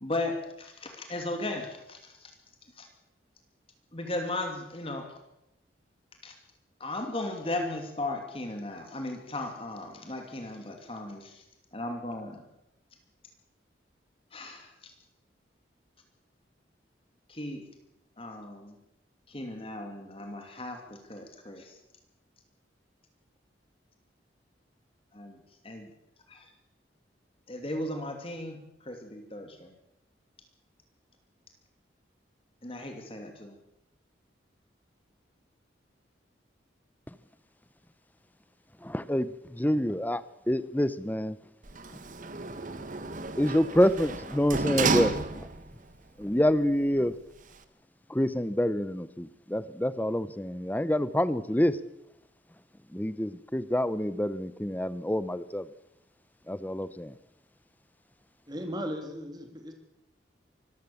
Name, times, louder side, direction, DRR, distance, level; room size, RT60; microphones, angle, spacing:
voice 1, 0.0-2.3 2.8-2.9 3.9-5.1 6.2-6.3 6.8-11.4 11.7-12.4 14.3-14.9 17.3-17.6 18.2-18.8 19.3-21.8 25.1-25.4 25.6-25.9 26.3-26.5 27.5-29.7 32.6-33.6, left 2 dB, 30° left, 4 dB, 2.7 m, -36 dB
voice 2, 38.8-41.4 43.4-45.5 46.2-47.1 48.1-51.8 52.9-55.7 56.5-57.1, equal, 10° left, 15 dB, 0.7 m, -27 dB
Sliding door, 41.6-45.8 46.2-46.3, right 3 dB, 45° right, 1.3 m, -31 dB
voice 3, 58.5-59.7, equal, 20° right, 4 dB, 3.1 m, -36 dB
24.5 x 15.0 x 7.1 m, 0.87 s
head